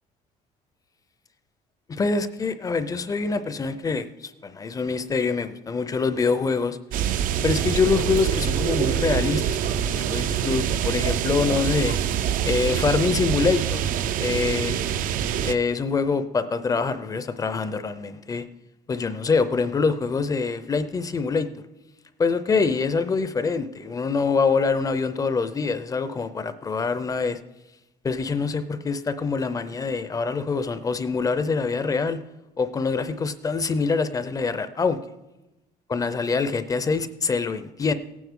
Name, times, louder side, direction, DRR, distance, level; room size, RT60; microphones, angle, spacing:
voice 1, 1.9-6.8 7.4-12.0 12.4-13.8 14.2-14.8 15.2-18.4 18.9-21.5 22.2-27.4 28.0-32.2 32.6-35.0 35.9-37.9, left 4 dB, 20° left, 0.5 m, -25 dB
sound 1, 6.9-15.5, right 9 dB, 60° right, 0.5 m, -25 dB
17.0 x 9.3 x 3.7 m
cardioid pair, 145°, 16 cm